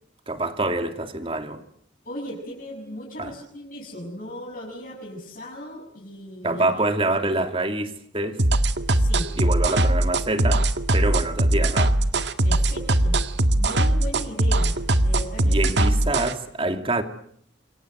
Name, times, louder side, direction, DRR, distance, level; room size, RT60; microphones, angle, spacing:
voice 1, 0.3-1.6 3.2-3.3 6.4-8.4 9.4-11.9 15.4-17.0, right 2 dB, 30° right, 2.5 m, -26 dB
voice 2, 2.0-6.9 7.4-7.5 8.9-9.3 12.4-13.2 13.6-15.6, equal, 50° left, 7.0 m, -37 dB
sound 1, 8.4-16.3, right 1 dB, 70° right, 1.8 m, -20 dB
28.0 x 23.5 x 7.9 m
head